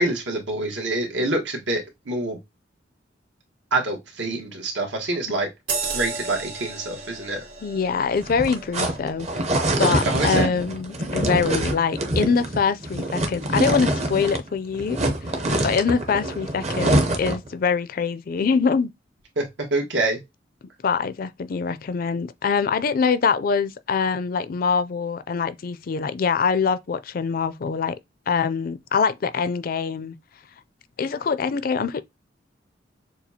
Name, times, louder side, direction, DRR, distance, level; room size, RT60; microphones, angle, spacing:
voice 1, 0.0-2.4 3.7-5.5 5.9-7.4 10.0-10.5 19.4-20.2, right 2 dB, 85° right, 1.4 m, -26 dB
sound 1, 5.7-10.6 11.1-11.3, right 5 dB, 55° right, 2.2 m, -35 dB
voice 2, 7.6-9.3 9.8-15.0 15.3-18.9 20.8-27.9 28.3-30.1 31.0-32.0, left 5 dB, 50° left, 0.4 m, -24 dB
sound 2, 8.2-14.5 14.7-17.5, right 1 dB, 35° right, 0.7 m, -25 dB
6.9 x 2.3 x 2.8 m
head